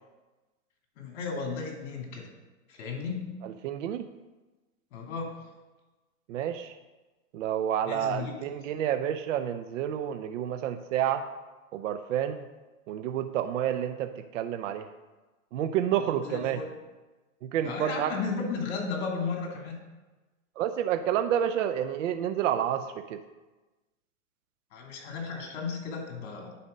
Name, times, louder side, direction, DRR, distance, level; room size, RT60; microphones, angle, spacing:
voice 1, 1.0-2.3 2.7-3.4 4.9-5.3 7.8-8.3 16.0-16.7 17.6-19.8 24.7-26.6, left 4 dB, 55° left, 1 dB, 2.4 m, -34 dB
voice 2, 3.4-4.0 6.3-6.8 7.3-11.3 11.7-12.4 12.9-14.9 15.5-16.6 17.4-18.1 20.6-23.2, right 10 dB, 65° right, 9 dB, 0.6 m, -29 dB
10.0 x 4.2 x 5.2 m, 1.2 s
hypercardioid pair, 145°, 41 cm